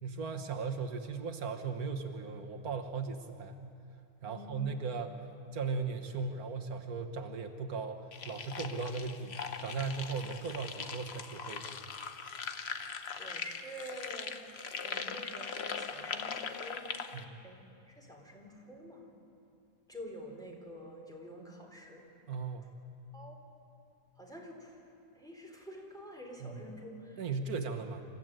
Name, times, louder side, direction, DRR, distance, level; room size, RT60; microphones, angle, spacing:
voice 1, 0.0-3.6 4.2-5.2 5.5-11.7 17.1-17.4 22.3-22.7 26.4-26.5 27.2-28.0, right 4 dB, 85° right, 4 dB, 1.7 m, -37 dB
voice 2, 4.2-4.6 13.1-14.4 14.8-16.9 17.4-19.1 19.9-22.1 23.1-23.4 24.2-24.8 25.1-27.2, equal, ahead, -1 dB, 3.9 m, -48 dB
sound 1, 8.1-17.2, left 6 dB, 50° left, 1.1 m, -41 dB
27.0 x 15.0 x 9.1 m, 2.6 s
omnidirectional pair, 1.5 m